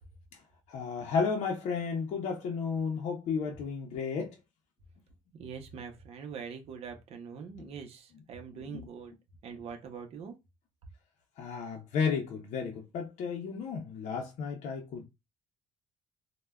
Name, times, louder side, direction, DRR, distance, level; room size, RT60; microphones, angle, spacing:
voice 1, 0.7-4.4 7.6-7.7 8.7-8.9 11.4-15.1, left 5 dB, 60° left, 0.5 m, -33 dB
voice 2, 5.3-9.1 9.4-10.4, right 6 dB, 50° right, 0.6 m, -43 dB
3.3 x 2.1 x 2.2 m
cardioid pair, 155°, 13 cm